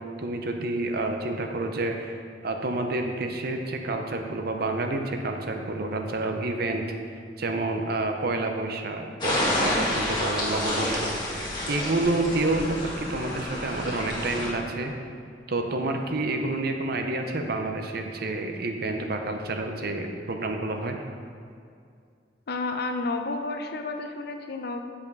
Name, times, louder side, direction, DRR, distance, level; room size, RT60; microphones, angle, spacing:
voice 1, 0.0-2.2 2.4-14.9 15.5-21.0, right 2 dB, 55° right, 4 dB, 0.7 m, -29 dB
sound 1, 9.2-14.5, left 1 dB, 25° left, 1.6 m, -29 dB
voice 2, 22.5-24.8, left 3 dB, 60° left, 5 dB, 0.6 m, -31 dB
7.1 x 5.6 x 5.4 m, 2.3 s
head